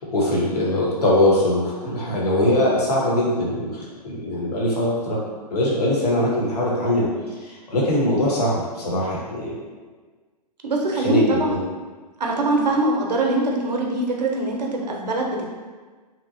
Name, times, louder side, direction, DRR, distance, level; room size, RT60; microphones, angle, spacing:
voice 1, 0.1-3.7 4.0-5.2 5.5-7.1 7.7-9.5 11.0-11.6, left 1 dB, 70° left, -5 dB, 1.1 m, -21 dB
voice 2, 10.6-11.7 12.2-15.5, right 2 dB, 80° right, 0 dB, 0.6 m, -23 dB
2.9 x 2.1 x 2.7 m, 1.4 s
hypercardioid pair, 125°, 21 cm